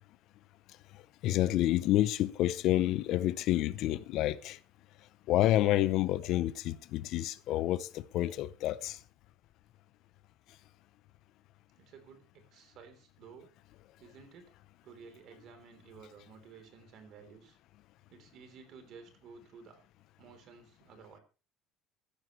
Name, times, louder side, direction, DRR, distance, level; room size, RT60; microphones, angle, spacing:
voice 1, 1.2-4.6 5.3-9.0, left 14 dB, 60° left, 0.6 m, -29 dB
voice 2, 11.8-13.5 14.0-14.5 14.8-17.6 18.1-19.8 20.2-21.2, right 6 dB, 50° right, 3.5 m, -54 dB
14.5 x 13.5 x 3.2 m
cardioid pair, 150°, 0 cm